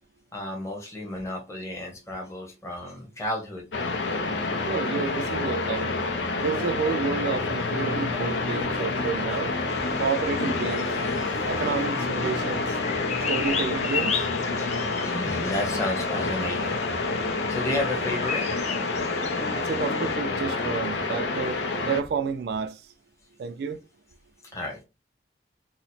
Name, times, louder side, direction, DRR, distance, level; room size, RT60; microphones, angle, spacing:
voice 1, 0.3-3.7 11.1-11.3 14.6-14.7 15.0-16.8 17.5-18.4 24.5-24.8, left 1 dB, 15° left, 0.7 m, -32 dB
sound 1, 3.7-22.0, left 3 dB, 85° left, 0.6 m, -28 dB
voice 2, 4.6-5.9 6.4-9.5 10.0-10.9 11.5-12.8 13.3-14.3 19.5-21.6 21.9-22.8 23.4-23.8, right 5 dB, 65° right, 0.3 m, -30 dB
Bird vocalization bird call bird song, 9.7-20.2, left 6 dB, 40° left, 0.4 m, -36 dB
2.9 x 2.0 x 4.1 m
head